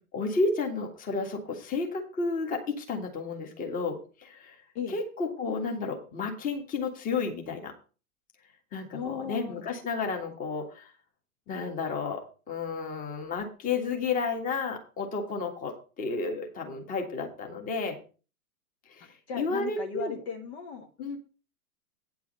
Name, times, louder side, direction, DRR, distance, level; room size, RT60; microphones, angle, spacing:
voice 1, 0.1-4.6 4.9-7.7 8.7-10.9 11.5-18.0 18.9-20.2 21.0-21.2, left 4 dB, 20° left, 4 dB, 1.8 m, -32 dB
voice 2, 8.9-9.6 19.3-20.9, left 6 dB, 45° left, 4 dB, 1.7 m, -36 dB
9.5 x 4.7 x 7.4 m, 0.35 s
figure-of-eight pair, 105°, 45 cm